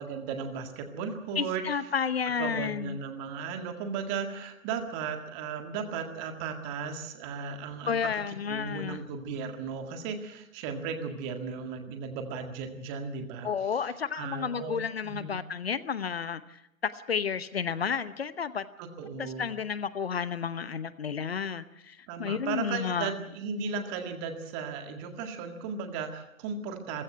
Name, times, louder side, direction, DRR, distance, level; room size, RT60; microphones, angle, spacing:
voice 1, 0.0-1.6 2.4-8.2 8.5-13.7 14.2-15.4 18.8-19.5 22.1-27.0, right 5 dB, 20° right, 6 dB, 1.8 m, -36 dB
voice 2, 1.4-3.0 7.9-9.0 13.4-18.7 19.2-23.1, left 7 dB, 50° left, 15 dB, 0.9 m, -32 dB
27.5 x 15.5 x 7.8 m, 0.82 s
figure-of-eight pair, 140°, 40 cm